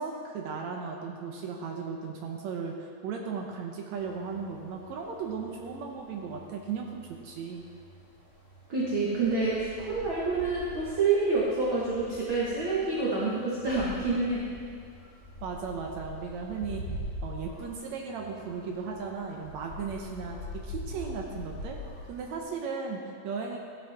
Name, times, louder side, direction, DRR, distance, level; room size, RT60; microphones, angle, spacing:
voice 1, 0.0-7.6 15.4-16.8 17.2-20.4 20.6-21.8 22.1-23.6, right 5 dB, 80° right, 0 dB, 1.6 m, -36 dB
sound 1, 4.0-22.4, left 1 dB, 15° left, 1.5 m, -44 dB
voice 2, 8.7-14.4, right 3 dB, 50° right, -7 dB, 1.6 m, -27 dB
15.5 x 10.5 x 3.6 m, 2.2 s
omnidirectional pair, 4.4 m